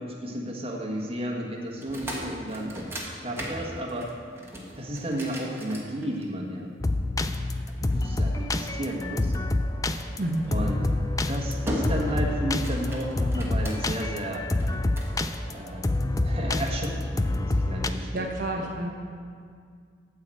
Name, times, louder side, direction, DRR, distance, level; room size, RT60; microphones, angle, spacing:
voice 1, 0.0-2.8 3.2-4.1 4.8-6.7 7.9-9.3 10.5-10.8 11.3-14.4 15.5-18.3, right 1 dB, 30° right, -1 dB, 1.4 m, -33 dB
sound 1, 1.7-6.5 7.2-8.5 10.3-10.5 11.0-11.3 11.7-12.2 12.5-14.1 14.6-15.2, equal, 15° right, 1.6 m, -37 dB
sound 2, 6.8-17.9, left 2 dB, 20° left, 0.4 m, -27 dB
voice 2, 10.2-10.5 18.1-18.9, right 1 dB, 50° right, -2 dB, 1.0 m, -29 dB
13.0 x 4.8 x 7.7 m, 2.1 s
head